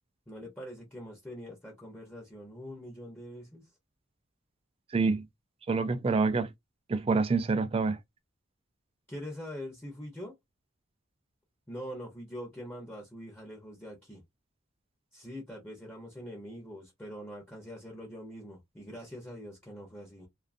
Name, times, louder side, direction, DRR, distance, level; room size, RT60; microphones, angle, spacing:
voice 1, 0.3-3.6 9.1-10.3 11.7-14.2 15.1-20.3, equal, 10° left, 0.7 m, -43 dB
voice 2, 4.9-5.2 5.7-6.5 6.9-8.0, right 4 dB, 30° right, 0.3 m, -27 dB
2.5 x 2.4 x 2.5 m
head